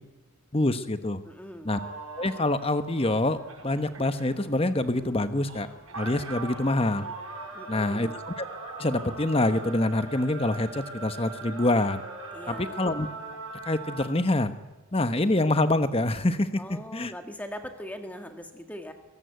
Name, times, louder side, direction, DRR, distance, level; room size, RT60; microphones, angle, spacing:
voice 1, 0.5-1.2 1.6-1.8 2.2-5.7 6.0-7.1 7.7-8.4 8.8-12.0 12.5-13.1 13.7-14.5 14.9-17.1, left 2 dB, 25° left, 11 dB, 1.0 m, -26 dB
voice 2, 1.2-1.7 7.5-8.2 12.3-12.9 16.6-18.9, equal, 5° left, 6 dB, 1.7 m, -41 dB
sound 1, 1.7-14.1, right 3 dB, 90° right, 6.1 m, -41 dB
23.5 x 18.0 x 8.1 m, 1.3 s
head